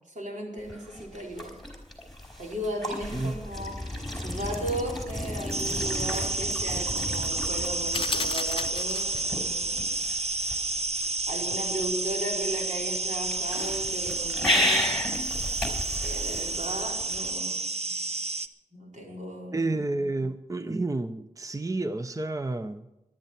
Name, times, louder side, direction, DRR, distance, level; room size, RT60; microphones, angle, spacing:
voice 1, 0.1-1.5 2.4-10.0 11.3-15.0 16.0-18.0 18.7-19.7, right 1 dB, 80° right, -1 dB, 4.5 m, -36 dB
sound 1, 0.6-17.3, left 1 dB, ahead, 4.6 m, -34 dB
sound 2, 5.5-18.5, right 3 dB, 55° right, 0.9 m, -30 dB
sound 3, 7.9-9.4, left 5 dB, 45° left, 0.4 m, -33 dB
voice 2, 19.5-22.9, right 2 dB, 25° right, 10 dB, 0.7 m, -30 dB
19.0 x 12.0 x 4.4 m, 0.94 s
wide cardioid pair, 75°, 13 cm